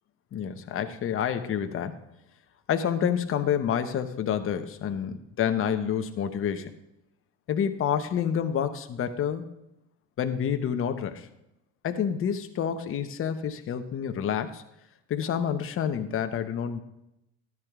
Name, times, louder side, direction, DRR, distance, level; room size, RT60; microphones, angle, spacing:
voice 1, 0.3-1.9 2.7-6.7 7.5-9.4 10.2-11.3 11.8-14.6 15.1-16.8, left 8 dB, 35° left, 8 dB, 0.9 m, -28 dB
13.0 x 10.5 x 2.4 m, 0.86 s
supercardioid pair, 95°, 36 cm